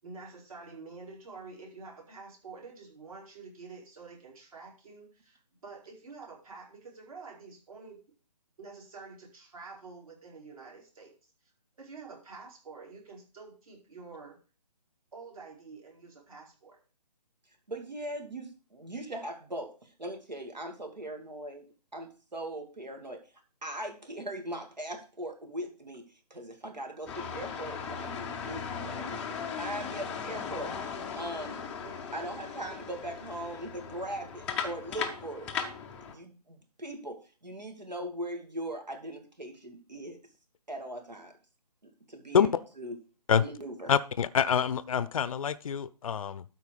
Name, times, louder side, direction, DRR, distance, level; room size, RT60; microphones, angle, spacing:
voice 1, 0.0-8.0 8.6-11.1 11.8-14.4 15.1-16.8 31.5-31.6 31.8-31.9, right 4 dB, 55° right, -1 dB, 4.9 m, -48 dB
voice 2, 17.7-21.7 21.9-23.2 23.6-29.2 29.6-30.7 31.1-31.6 32.1-35.5 36.0-40.2 40.7-41.4 41.8-43.0 43.4-43.9, right 1 dB, 85° right, 5 dB, 2.6 m, -40 dB
sound 1, 27.1-36.1, left 6 dB, 5° left, 0.4 m, -38 dB
voice 3, 43.9-46.4, left 7 dB, 55° left, 17 dB, 0.5 m, -26 dB
12.5 x 4.6 x 5.0 m, 0.36 s
figure-of-eight pair, 150°, 21 cm